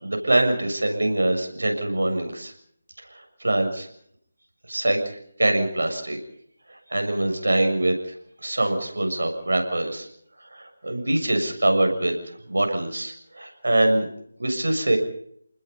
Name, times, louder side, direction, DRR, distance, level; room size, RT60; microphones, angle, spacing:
voice 1, 0.0-2.5 3.1-3.9 4.7-5.0 5.4-6.2 6.7-8.2 8.4-10.1 10.4-14.1 14.4-15.0, right 1 dB, 80° right, 5 dB, 6.9 m, -24 dB
29.5 x 20.5 x 5.4 m, 0.68 s
figure-of-eight pair, 160°, 0 cm